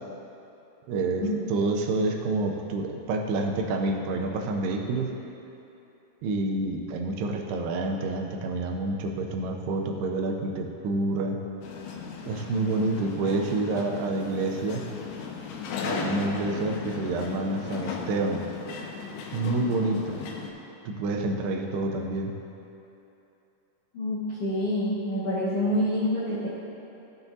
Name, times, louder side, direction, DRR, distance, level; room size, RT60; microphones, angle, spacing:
voice 1, 0.9-5.1 6.2-11.4 12.3-14.9 15.8-18.5 19.3-20.2 20.9-22.3, right 2 dB, 85° right, 2 dB, 2.7 m, -28 dB
sound 1, 11.6-20.5, left 5 dB, 90° left, 2.7 m, -36 dB
voice 2, 23.9-26.5, left 1 dB, 65° left, -12 dB, 1.4 m, -27 dB
14.0 x 6.9 x 2.7 m, 2.9 s
omnidirectional pair, 4.6 m